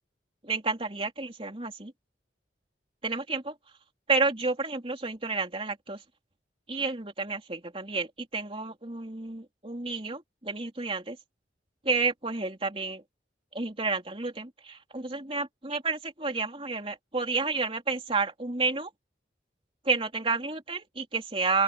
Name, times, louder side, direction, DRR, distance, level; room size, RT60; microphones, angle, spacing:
voice 1, 0.4-1.9 3.0-3.5 4.1-6.0 6.7-11.2 11.8-13.0 13.5-18.9 19.8-21.6, right 4 dB, 30° right, 3.2 m, -30 dB
open air
head